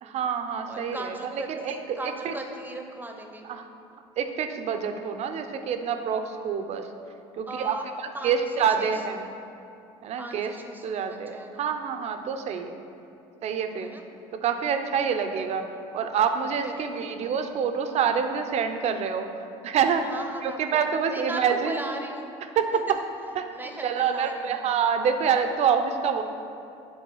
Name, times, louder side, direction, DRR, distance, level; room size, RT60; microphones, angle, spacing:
voice 1, 0.0-1.1 1.5-2.3 3.5-3.6 4.2-6.9 7.4-9.3 10.0-10.5 10.8-12.8 13.4-13.9 14.3-15.7 15.9-19.3 19.6-20.1 20.4-21.8 22.6-22.8 23.4-23.5 23.8-26.2, right 7 dB, 55° right, 7 dB, 0.6 m, -27 dB
voice 2, 0.7-3.5 7.5-7.9 8.1-9.3 10.2-11.7 13.8-14.0 16.6-17.2 20.0-22.3 22.7-23.0 23.5-24.7, right 2 dB, 15° right, 3 dB, 0.8 m, -38 dB
7.2 x 3.4 x 6.1 m, 2.7 s
supercardioid pair, 80°, 13 cm